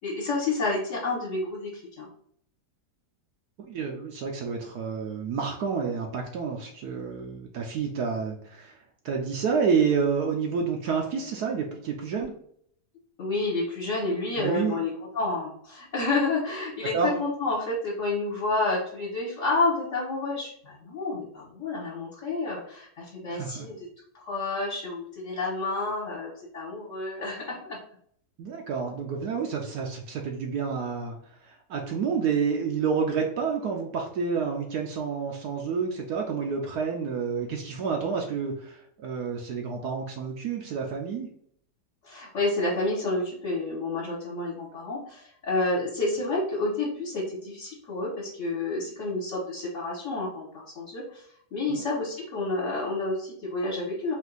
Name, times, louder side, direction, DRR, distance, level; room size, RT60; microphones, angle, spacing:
voice 1, 0.0-2.1 13.2-14.9 15.1-23.9 24.1-27.8 42.0-51.3 51.5-54.1, left 2 dB, 50° left, -6 dB, 1.4 m, -29 dB
voice 2, 3.6-8.8 9.0-12.3 14.4-14.8 16.9-17.1 23.3-23.7 28.4-31.2 31.5-41.3 51.7-51.8, right 5 dB, 70° right, 1 dB, 1.1 m, -29 dB
4.4 x 2.5 x 3.9 m, 0.63 s
omnidirectional pair, 1.8 m